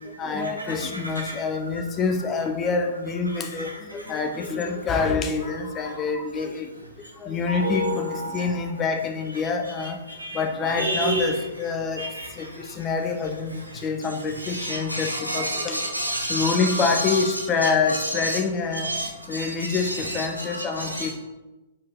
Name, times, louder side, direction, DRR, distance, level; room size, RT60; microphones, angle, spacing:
voice 1, 0.0-6.7 7.0-10.0 10.3-12.0 12.3-15.8 16.3-18.9 19.3-21.1, left 4 dB, 20° left, 5 dB, 0.4 m, -26 dB
voice 2, 7.5-8.4 10.2-10.4 10.8-11.3 12.0-12.3 14.4-17.2 18.2-18.4 18.8-19.8 20.2-21.1, right 1 dB, 85° right, 0 dB, 1.0 m, -29 dB
4.4 x 4.3 x 2.2 m, 1.1 s
figure-of-eight pair, 110°, 0 cm